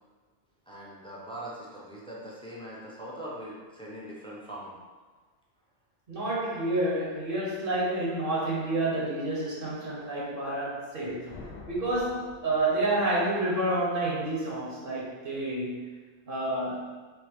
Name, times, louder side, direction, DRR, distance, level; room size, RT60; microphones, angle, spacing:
voice 1, 0.7-4.8, right 1 dB, 5° left, -5 dB, 0.5 m, -41 dB
voice 2, 6.1-15.9 16.3-16.9, right 2 dB, 55° right, -5 dB, 0.9 m, -29 dB
sound 1, 11.3-13.2, left 4 dB, 90° left, 1.0 m, -48 dB
3.5 x 3.0 x 3.4 m, 1.4 s
omnidirectional pair, 1.2 m